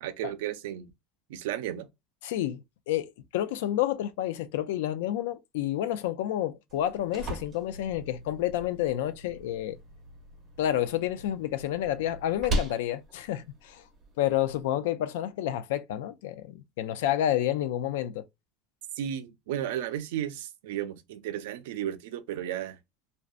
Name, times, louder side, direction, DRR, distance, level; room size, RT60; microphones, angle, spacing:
voice 1, 0.0-0.9 1.3-1.9 19.0-22.8, right 11 dB, 90° right, 0.4 m, -34 dB
voice 2, 2.2-2.6 2.9-9.8 10.6-13.8 14.2-18.2, left 12 dB, 90° left, 0.3 m, -29 dB
sound 1, 6.7-14.7, right 1 dB, 30° right, 0.7 m, -38 dB
2.5 x 2.1 x 2.4 m
supercardioid pair, 145°, 0 cm